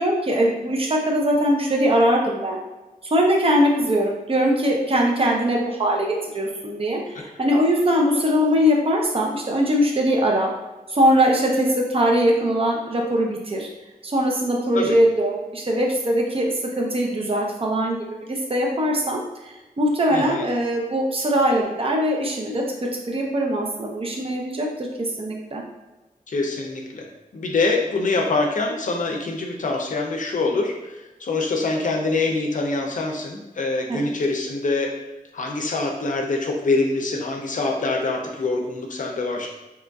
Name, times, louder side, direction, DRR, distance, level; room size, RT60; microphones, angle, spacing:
voice 1, 0.0-2.6 3.0-10.5 10.9-13.7 14.0-16.5 16.8-18.0 18.3-19.2 19.8-24.9 25.2-25.6 33.9-34.0, equal, 40° right, -1 dB, 0.6 m, -21 dB
voice 2, 20.1-20.5 26.3-27.1 27.3-34.9 35.3-39.5, left 3 dB, 60° left, 1 dB, 0.5 m, -24 dB
3.0 x 2.4 x 2.3 m, 1.1 s
wide cardioid pair, 90°, 15 cm